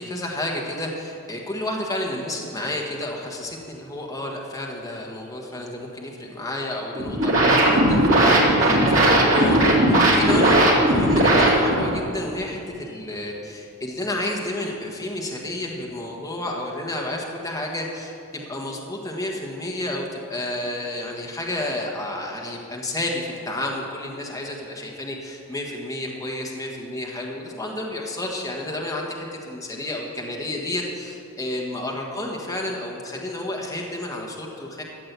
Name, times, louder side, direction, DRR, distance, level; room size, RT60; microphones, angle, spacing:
voice 1, 0.0-34.8, left 1 dB, 15° left, -1 dB, 1.4 m, -31 dB
sound 1, 6.9-11.9, right 1 dB, 65° right, 2.7 m, -17 dB
13.5 x 7.6 x 8.1 m, 2.6 s
head